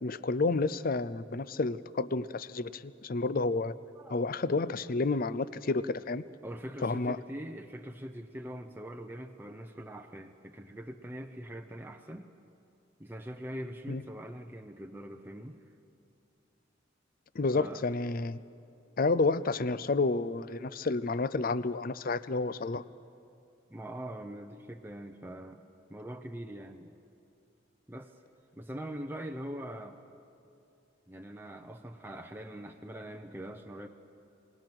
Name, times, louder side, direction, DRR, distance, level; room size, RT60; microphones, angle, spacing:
voice 1, 0.0-3.8 4.1-6.2 6.8-7.2 13.9-14.0 17.3-18.4 19.0-22.8, left 3 dB, 45° left, 16 dB, 0.5 m, -30 dB
voice 2, 6.4-12.3 13.0-15.6 17.5-17.8 23.7-25.6 25.9-26.9 27.9-28.1 28.6-30.0 31.1-33.9, equal, 10° right, 4 dB, 0.7 m, -42 dB
28.0 x 19.0 x 6.1 m, 2.6 s
head